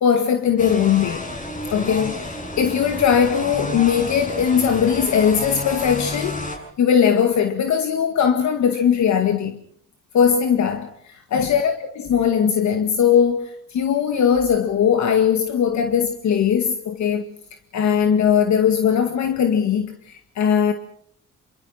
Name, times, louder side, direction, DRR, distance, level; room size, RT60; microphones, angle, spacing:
voice 1, 0.0-1.2 1.7-9.6 10.1-17.2 17.7-20.7, left 7 dB, 65° left, 2.0 m, -19 dB
sound 1, 0.6-6.6, left 1 dB, 25° left, 7.2 m, -31 dB
27.0 x 23.5 x 5.8 m
cardioid pair, 90°, 30 cm